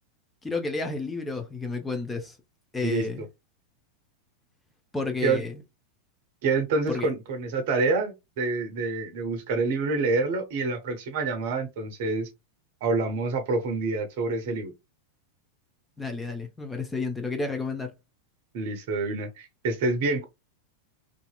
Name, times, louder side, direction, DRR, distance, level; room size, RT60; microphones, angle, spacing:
voice 1, 0.4-2.4 2.7-3.2 4.9-5.6 6.9-7.1 16.0-17.9, left 3 dB, 10° left, 0.6 m, -31 dB
voice 2, 6.4-12.3 12.8-14.7 18.5-20.3, right 3 dB, 50° right, 0.7 m, -27 dB
2.7 x 2.5 x 2.2 m
figure-of-eight pair, 90°, 0 cm